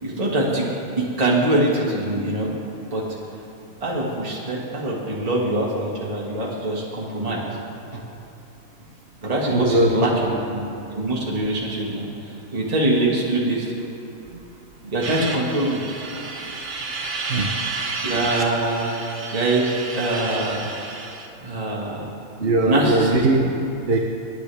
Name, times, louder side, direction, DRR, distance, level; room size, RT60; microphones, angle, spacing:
voice 1, 0.0-0.7 1.0-2.5 2.9-3.0 3.8-7.4 7.9-8.0 9.2-13.7 14.9-15.8 18.0-19.0 19.3-19.7 19.9-20.7 21.4-22.0 22.7-23.2, right 1 dB, 25° right, -5 dB, 1.9 m, -23 dB
voice 2, 9.5-10.3 17.3-17.5 22.4-24.0, right 2 dB, 50° right, 1 dB, 1.0 m, -20 dB
sound 1, 15.0-21.3, right 3 dB, 90° right, 1.8 m, -31 dB
26.5 x 10.5 x 3.4 m, 2.8 s
omnidirectional pair, 1.4 m